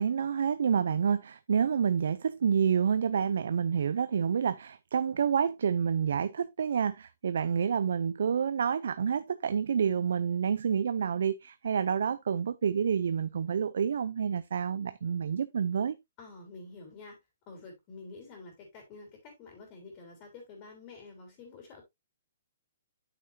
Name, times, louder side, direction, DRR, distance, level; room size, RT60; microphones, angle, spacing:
voice 1, 0.0-16.0, right 7 dB, 70° right, 0.5 m, -28 dB
voice 2, 16.2-17.2 17.5-21.8, left 3 dB, 25° left, 3.4 m, -48 dB
9.0 x 6.7 x 2.7 m
hypercardioid pair, 160°, 0 cm